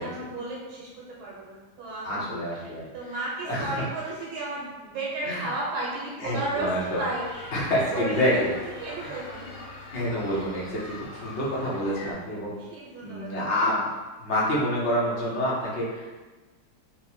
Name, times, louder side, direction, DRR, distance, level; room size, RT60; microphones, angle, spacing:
voice 1, 0.0-2.3 2.6-6.7 7.0-7.5 7.9-9.6 10.2-10.5 12.5-13.4, right 2 dB, 85° right, -5 dB, 1.7 m, -34 dB
voice 2, 2.0-2.9 3.4-3.8 5.2-5.5 6.2-7.0 7.5-8.5 9.0-9.2 9.9-12.5 13.0-13.9 14.2-16.1, equal, 50° left, -5 dB, 0.9 m, -27 dB
sound 1, 6.2-12.1, left 2 dB, 75° left, 1.4 m, -43 dB
4.2 x 2.1 x 4.3 m, 1.2 s
omnidirectional pair, 2.1 m